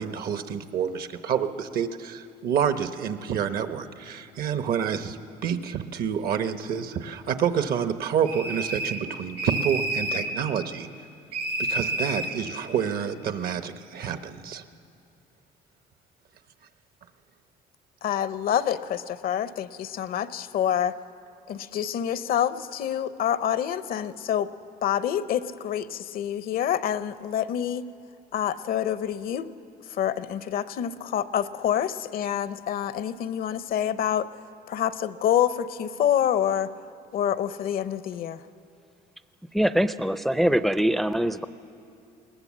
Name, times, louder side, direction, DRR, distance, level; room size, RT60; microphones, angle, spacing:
voice 1, 0.0-10.9 11.6-14.6, right 8 dB, 60° right, 10 dB, 1.0 m, -28 dB
sound 1, 8.3-9.1 9.4-10.3 11.3-12.4, right 1 dB, 80° right, 1.5 m, -29 dB
voice 2, 18.0-20.9 21.5-24.5 24.8-27.9 28.3-29.5 30.0-34.3 34.7-36.7 37.1-38.4, left 10 dB, 60° left, 14 dB, 0.7 m, -27 dB
voice 3, 39.5-41.4, equal, ahead, 12 dB, 0.4 m, -23 dB
21.0 x 18.5 x 7.4 m, 2.5 s
cardioid pair, 110°, 17 cm